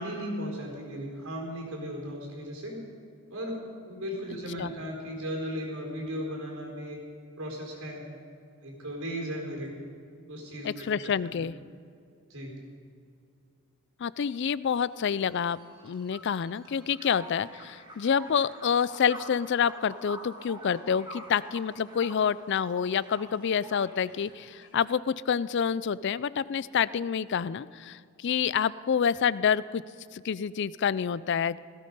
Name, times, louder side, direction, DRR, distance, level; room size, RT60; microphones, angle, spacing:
voice 1, 0.0-2.8 3.3-3.6 3.9-7.0 7.4-8.1 8.6-9.7 10.3-10.9 12.3-12.6, equal, 80° right, 0 dB, 4.4 m, -36 dB
voice 2, 10.6-11.5 14.0-15.6 15.8-29.8 30.1-31.6, left 7 dB, 55° left, 18 dB, 0.4 m, -28 dB
sound 1, 14.9-24.8, right 1 dB, 20° right, 2.3 m, -47 dB
17.0 x 15.5 x 5.4 m, 2.4 s
head